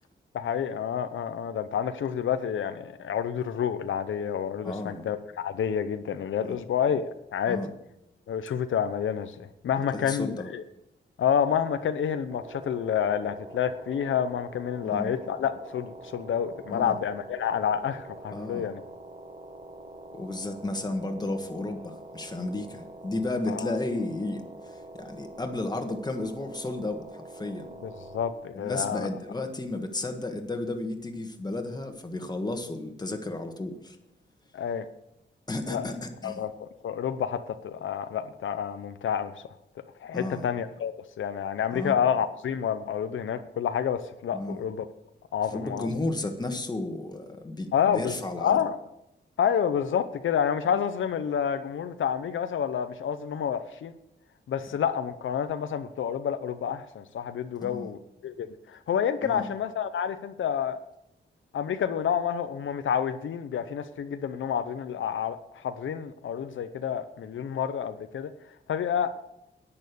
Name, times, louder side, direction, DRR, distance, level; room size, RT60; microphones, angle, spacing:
voice 1, 0.3-7.6 8.3-10.6 11.2-18.8 23.5-23.8 27.8-29.1 34.5-34.9 35.7-35.8 36.2-39.3 40.0-44.9 45.3-45.9 47.7-48.8 49.4-53.9 54.5-60.8 61.5-68.3 68.7-69.1, left 8 dB, 85° left, 10 dB, 0.7 m, -29 dB
voice 2, 4.6-5.1 6.4-6.6 7.5-7.7 9.9-10.5 14.8-15.1 16.7-17.0 18.3-18.7 20.1-27.7 28.5-34.0 35.5-36.4 40.1-40.4 41.7-41.9 44.3-44.6 45.5-48.6 57.6-57.9 59.2-59.5, left 2 dB, 20° left, 5 dB, 1.7 m, -33 dB
sound 1, 12.3-28.3, right 1 dB, 30° right, 1.4 m, -45 dB
10.5 x 8.9 x 6.9 m, 0.84 s
wide cardioid pair, 110°, 20 cm